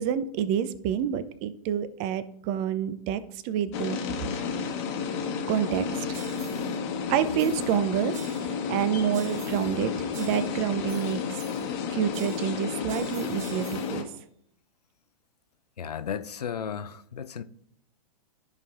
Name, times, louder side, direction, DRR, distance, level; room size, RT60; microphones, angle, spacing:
voice 1, 0.0-4.0 5.5-6.1 7.1-8.1 8.7-11.4 11.9-14.1, right 9 dB, 35° right, 0.6 m, -28 dB
sound 1, 3.7-14.0, left 6 dB, 45° left, 1.2 m, -31 dB
sound 2, 6.1-6.8 7.4-7.8 8.1-8.8 9.1-9.8 10.1-11.8 12.1-14.0, right 7 dB, 60° right, 1.3 m, -47 dB
voice 2, 15.8-17.4, left 7 dB, 85° left, 0.6 m, -34 dB
13.5 x 5.4 x 2.5 m
hypercardioid pair, 120°, 20 cm